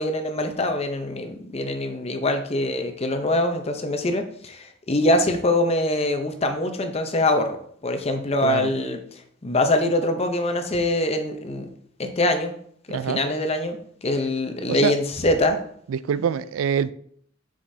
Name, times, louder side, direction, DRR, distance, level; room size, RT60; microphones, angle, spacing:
voice 1, 0.0-7.6 7.8-9.0 9.4-11.7 12.0-12.5 12.9-15.6, left 1 dB, 30° left, 0.6 m, -24 dB
voice 2, 8.4-8.7 12.9-13.2 14.7-15.0 15.9-16.9, right 7 dB, 90° right, 0.3 m, -24 dB
6.9 x 5.0 x 2.7 m
head